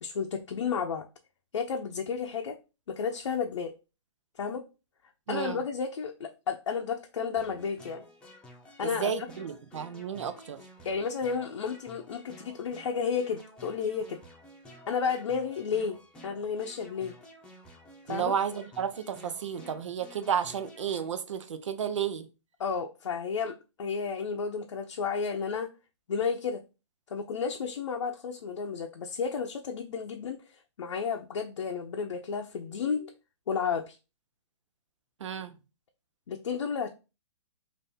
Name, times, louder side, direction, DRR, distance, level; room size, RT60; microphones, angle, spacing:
voice 1, 0.0-1.1 1.5-2.6 2.9-3.7 4.4-4.6 5.3-8.0 8.8-9.1 10.8-14.2 14.9-16.0 16.2-17.1 18.1-18.3 22.6-25.7 26.1-26.6 27.1-30.4 30.8-33.1 33.5-34.0 36.3-36.9, left 6 dB, 75° left, 0.6 m, -32 dB
voice 2, 5.3-5.6 8.8-10.6 18.1-22.3 35.2-35.6, right 8 dB, 75° right, 0.7 m, -32 dB
sound 1, 7.4-21.1, left 1 dB, 5° left, 0.9 m, -52 dB
3.5 x 2.6 x 4.1 m
hypercardioid pair, 145°, 16 cm